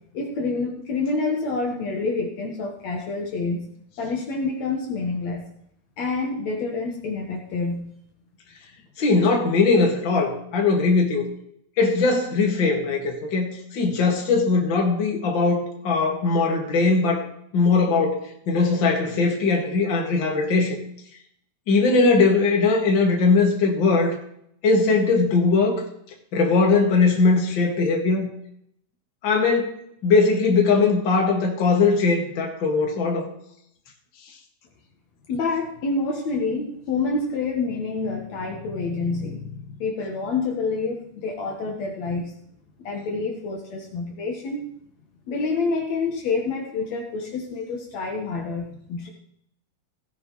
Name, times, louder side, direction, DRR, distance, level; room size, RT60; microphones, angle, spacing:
voice 1, 0.1-3.7 4.0-5.4 6.0-7.9 35.3-42.3 42.8-44.8 45.3-49.1, left 3 dB, 65° left, 1 dB, 2.6 m, -27 dB
voice 2, 9.0-11.3 11.8-17.3 17.5-20.8 21.7-24.2 24.6-25.8 26.3-28.3 29.2-29.7 30.0-33.3, left 4 dB, 40° left, 0 dB, 2.5 m, -20 dB
16.5 x 10.5 x 3.2 m, 0.71 s
omnidirectional pair, 3.4 m